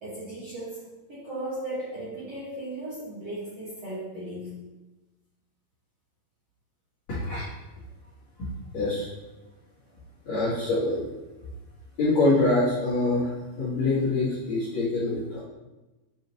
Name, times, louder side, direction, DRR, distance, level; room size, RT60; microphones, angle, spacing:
voice 1, 0.0-4.5 9.8-9.9, right 1 dB, 60° right, -10 dB, 1.6 m, -36 dB
voice 2, 7.1-7.4 8.4-8.5 8.7-9.1 10.2-11.0 12.0-15.4, left 2 dB, 45° left, -12 dB, 2.7 m, -25 dB
8.6 x 5.4 x 3.0 m, 1.1 s
omnidirectional pair, 5.6 m